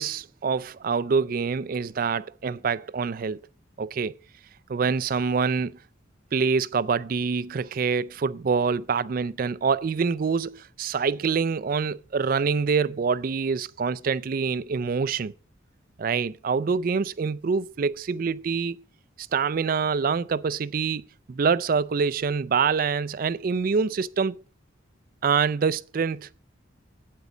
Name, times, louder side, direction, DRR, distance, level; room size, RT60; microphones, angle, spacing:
voice 1, 0.0-3.4 3.8-4.1 4.7-5.8 6.3-15.3 16.0-18.8 19.2-24.4 25.2-26.3, right 5 dB, 45° right, 0.3 m, -25 dB
8.4 x 8.0 x 4.9 m
head